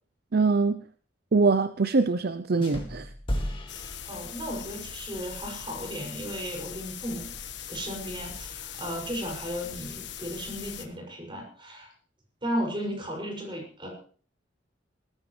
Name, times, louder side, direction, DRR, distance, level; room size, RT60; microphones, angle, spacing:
voice 1, 0.3-0.8 1.3-3.1, right 4 dB, 55° right, 0.6 m, -23 dB
sound 1, 2.6-4.8, equal, 30° left, 2.3 m, -34 dB
sound 2, 3.7-10.9, left 8 dB, 65° left, 1.4 m, -40 dB
voice 2, 4.0-7.3 7.7-11.9 12.4-13.9, equal, 25° right, 6.5 m, -35 dB
19.5 x 14.5 x 3.3 m
head